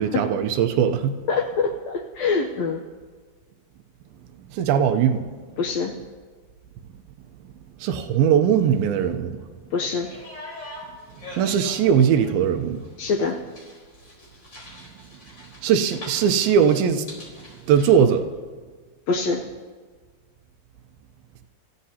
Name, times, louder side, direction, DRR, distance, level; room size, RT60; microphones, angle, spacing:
voice 1, 0.0-1.1 4.5-5.2 7.8-9.4 11.4-12.8 15.6-17.1 17.7-18.2, right 8 dB, 80° right, 8 dB, 2.5 m, -20 dB
voice 2, 1.3-2.8 5.6-5.9 9.7-10.1 13.0-13.4 19.1-19.4, left 4 dB, 90° left, 2 dB, 1.5 m, -24 dB
sound 1, 10.0-18.1, left 2 dB, 30° left, 4.6 m, -43 dB
28.0 x 15.0 x 2.8 m, 1.5 s
omnidirectional pair, 4.2 m